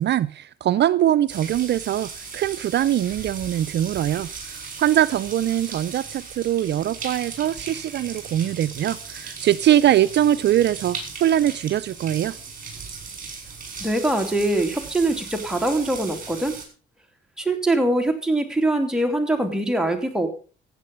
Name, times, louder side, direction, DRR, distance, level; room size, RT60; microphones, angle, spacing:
voice 1, 0.0-12.3, right 12 dB, 60° right, 0.5 m, -22 dB
sound 1, 1.3-16.6, right 5 dB, 45° right, 5.5 m, -37 dB
voice 2, 13.8-16.6 17.4-20.3, right 1 dB, 5° right, 2.9 m, -23 dB
15.0 x 8.6 x 5.4 m
cardioid pair, 90°, 20 cm